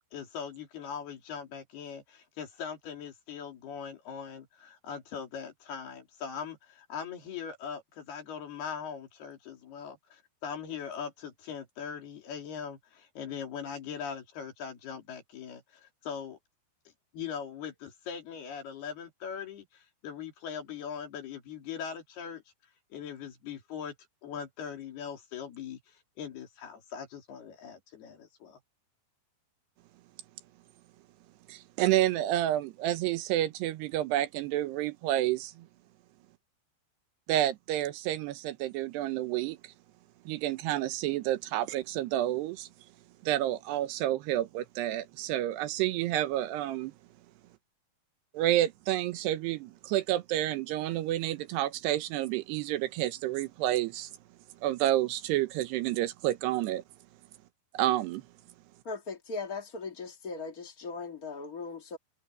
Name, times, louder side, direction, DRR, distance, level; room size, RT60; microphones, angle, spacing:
voice 1, 0.1-16.4 17.1-22.4 22.9-23.9 24.2-28.6, left 7 dB, 65° left, 5.2 m, -41 dB
voice 2, 31.5-35.7 37.3-39.7 40.3-42.7 43.2-46.9 48.3-54.1 54.6-56.8 57.7-58.2, right 14 dB, 80° right, 2.9 m, -29 dB
voice 3, 58.8-62.0, left 4 dB, 80° left, 0.8 m, -38 dB
omnidirectional pair, 5.0 m